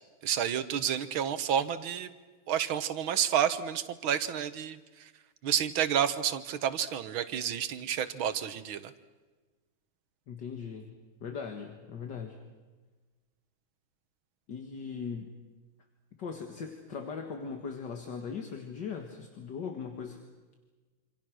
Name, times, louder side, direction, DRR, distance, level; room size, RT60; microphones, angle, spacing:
voice 1, 0.2-2.1 2.5-5.1 5.4-8.9, right 9 dB, 85° right, 12 dB, 2.0 m, -30 dB
voice 2, 10.3-10.9 11.2-12.4 14.5-15.3 16.2-20.2, left 6 dB, 60° left, 4 dB, 2.3 m, -39 dB
27.0 x 26.5 x 6.3 m, 1.3 s
omnidirectional pair, 2.2 m